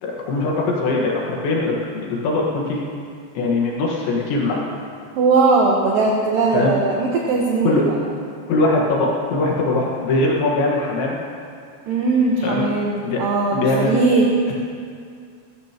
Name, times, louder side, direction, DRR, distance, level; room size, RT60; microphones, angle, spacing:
voice 1, 0.0-2.8 3.4-4.7 6.5-6.7 7.6-7.8 8.5-11.2 12.4-12.7 13.0-13.2 13.5-14.0, left 2 dB, 85° left, -3 dB, 3.9 m, -21 dB
voice 2, 5.2-8.0 11.9-14.3, right 3 dB, 65° right, -2 dB, 2.4 m, -19 dB
21.5 x 14.5 x 3.0 m, 2.3 s
omnidirectional pair, 5.1 m